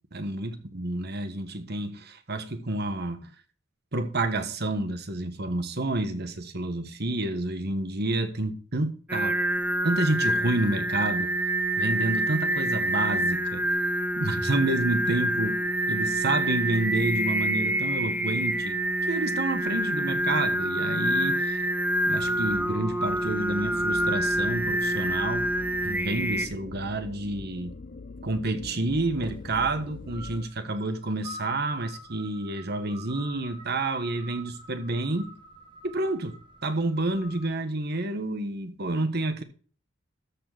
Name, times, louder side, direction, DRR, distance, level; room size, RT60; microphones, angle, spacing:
voice 1, 0.1-3.3 3.9-9.4 9.8-11.3 11.8-13.7 14.2-15.5 15.9-18.8 19.1-21.6 22.1-25.5 25.8-27.8 28.2-35.3 35.8-39.4, right 2 dB, 55° right, 1.4 m, -29 dB
Singing, 9.1-26.5, right 1 dB, 10° right, 0.6 m, -27 dB
sound 1, 22.2-30.5, left 3 dB, 45° left, 0.5 m, -43 dB
sound 2, 29.0-37.5, equal, 25° right, 1.6 m, -47 dB
13.5 x 4.6 x 6.0 m
head